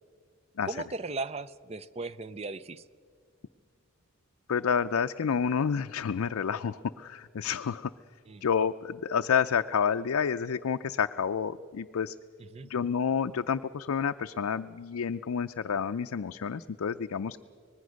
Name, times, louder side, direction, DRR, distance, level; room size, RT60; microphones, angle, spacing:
voice 1, 0.7-2.8 8.3-8.4 12.4-12.7, right 3 dB, 30° right, 16 dB, 0.5 m, -37 dB
voice 2, 4.5-7.9 8.4-12.1 12.7-17.4, left 7 dB, 80° left, 8 dB, 0.4 m, -29 dB
24.5 x 20.0 x 6.4 m, 2.1 s
head